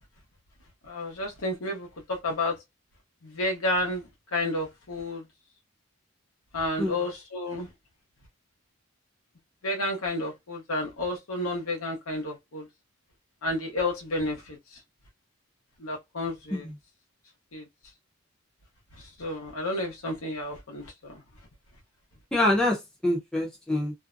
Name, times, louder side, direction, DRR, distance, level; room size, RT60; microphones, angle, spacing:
voice 1, 0.9-2.6 3.2-5.2 6.5-7.7 9.6-12.7 13.4-14.6 15.8-16.7 17.5-17.7 19.2-21.2, left 1 dB, 75° left, 0.8 m, -31 dB
voice 2, 22.3-23.9, left 1 dB, 5° left, 0.6 m, -26 dB
2.6 x 2.1 x 2.4 m
head